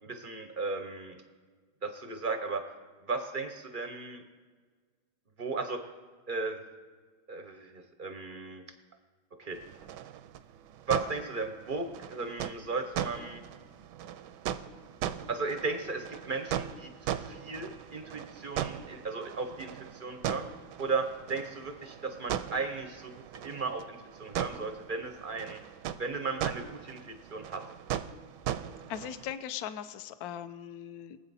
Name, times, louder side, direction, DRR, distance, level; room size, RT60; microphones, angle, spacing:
voice 1, 0.0-1.2 1.8-2.6 3.0-4.2 5.4-5.8 6.3-6.6 7.3-8.6 9.4-9.6 10.9-13.4 15.3-20.5 20.8-23.1 23.4-25.6 26.0-27.6, right 4 dB, 55° right, 6 dB, 0.5 m, -35 dB
sound 1, 9.5-29.3, right 10 dB, 75° right, 1.1 m, -39 dB
voice 2, 28.9-31.2, left 10 dB, 65° left, 11 dB, 1.0 m, -39 dB
23.0 x 8.1 x 4.1 m, 1.5 s
omnidirectional pair, 2.2 m